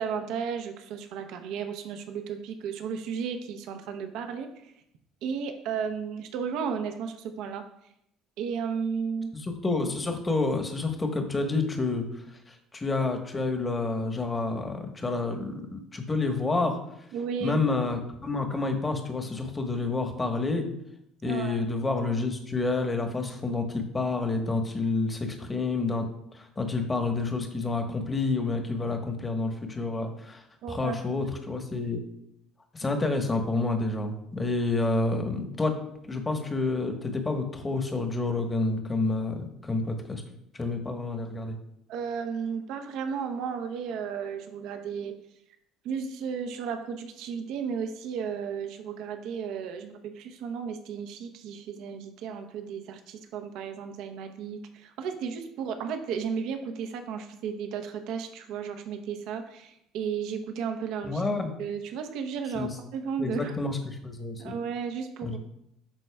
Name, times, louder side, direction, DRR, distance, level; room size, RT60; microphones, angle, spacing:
voice 1, 0.0-4.7 5.2-7.6 8.4-9.3 17.1-17.6 21.2-21.6 30.6-31.2 41.9-45.1 45.8-63.6 64.4-65.4, right 6 dB, 65° right, 6 dB, 0.8 m, -34 dB
voice 2, 9.3-12.1 12.5-16.8 17.4-20.7 21.2-26.0 26.3-30.4 30.7-32.0 32.7-35.7 36.0-40.2 40.5-41.6 61.0-61.5 62.5-62.7 63.2-64.5 65.2-65.4, left 3 dB, 20° left, 4 dB, 1.2 m, -29 dB
12.0 x 4.1 x 2.3 m, 0.78 s
hypercardioid pair, 65°, 0 cm